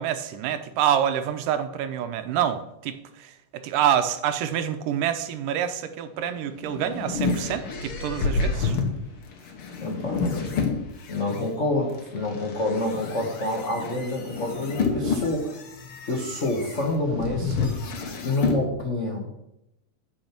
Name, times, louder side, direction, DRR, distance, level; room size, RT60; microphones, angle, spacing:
voice 1, 0.0-8.8, right 9 dB, 85° right, 10 dB, 2.4 m, -27 dB
sound 1, 6.4-11.4 12.0-18.6, left 4 dB, 60° left, 1.6 m, -29 dB
voice 2, 9.8-10.6 11.1-15.6 16.1-17.8 18.2-19.2, left 2 dB, 75° left, -1 dB, 0.6 m, -28 dB
8.7 x 6.6 x 5.9 m, 0.85 s
omnidirectional pair, 3.7 m